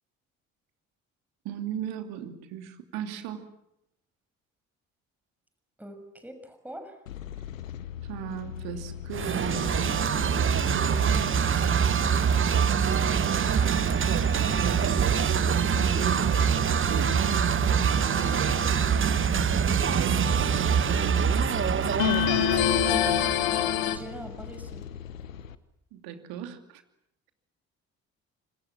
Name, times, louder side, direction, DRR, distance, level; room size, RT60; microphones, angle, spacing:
voice 1, 1.4-3.4 8.1-11.3 11.7-18.8 19.4-19.7 19.9-21.8 25.9-26.8, right 9 dB, 65° right, 7 dB, 2.9 m, -37 dB
voice 2, 5.8-7.0 23.5-24.9, equal, 5° right, 7 dB, 6.1 m, -42 dB
sound 1, 7.1-25.6, left 9 dB, 85° left, 1.1 m, -39 dB
sound 2, 9.1-23.8, right 7 dB, 30° right, 1.0 m, -25 dB
sound 3, 18.0-18.6 22.0-24.0, left 13 dB, 65° left, 2.0 m, -25 dB
27.5 x 26.0 x 7.5 m, 0.79 s
figure-of-eight pair, 45°, 39 cm